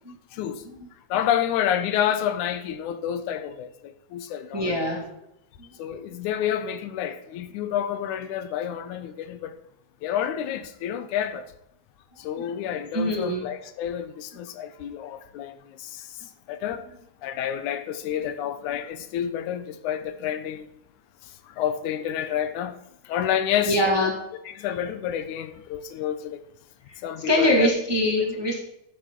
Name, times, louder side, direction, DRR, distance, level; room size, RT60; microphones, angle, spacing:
voice 1, 0.3-0.6 1.1-5.0 5.8-9.6 10.0-11.4 12.2-16.2 16.5-16.8 17.2-20.7 21.5-22.8 23.1-23.8 24.5-26.4 27.0-27.7 28.2-28.3, left 10 dB, 90° left, 2.2 m, -29 dB
voice 2, 4.5-5.1 5.6-5.7 12.4-12.5 12.9-13.5 23.6-24.1 26.9-27.0 27.3-28.6, left 1 dB, 10° right, 1.2 m, -23 dB
13.0 x 8.2 x 3.7 m
omnidirectional pair, 3.4 m